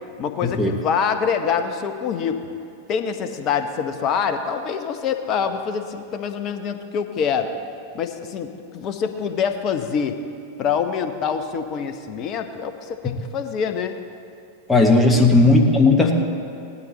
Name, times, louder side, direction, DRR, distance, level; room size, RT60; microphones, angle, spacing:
voice 1, 0.2-2.4 2.9-7.5 7.9-10.2 10.6-14.0 15.1-15.3, left 7 dB, 35° left, 8 dB, 0.9 m, -25 dB
voice 2, 14.7-16.1, left 2 dB, 10° left, 2 dB, 1.3 m, -15 dB
17.5 x 12.0 x 3.3 m, 2.6 s
figure-of-eight pair, 90°, 0 cm